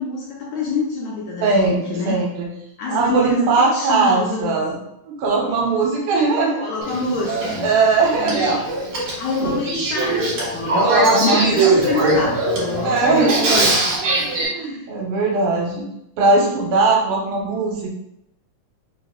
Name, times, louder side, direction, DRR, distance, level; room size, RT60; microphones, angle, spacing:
voice 1, 0.0-2.2 2.8-4.5 6.6-7.7 8.2-8.3 9.2-10.2 10.5-13.9 14.5-14.9, left 3 dB, 80° left, -3 dB, 1.7 m, -27 dB
voice 2, 1.4-2.5 2.9-4.8 5.1-6.7 7.6-9.1 10.8-11.9 12.8-13.6 14.4-15.8 16.2-17.9, right 3 dB, 75° right, -1 dB, 2.0 m, -20 dB
Male speech man speaking / Female speech woman speaking / Conversation, 6.8-14.5, right 2 dB, 60° right, 2.1 m, -21 dB
4.8 x 2.8 x 2.3 m, 0.81 s
omnidirectional pair, 3.7 m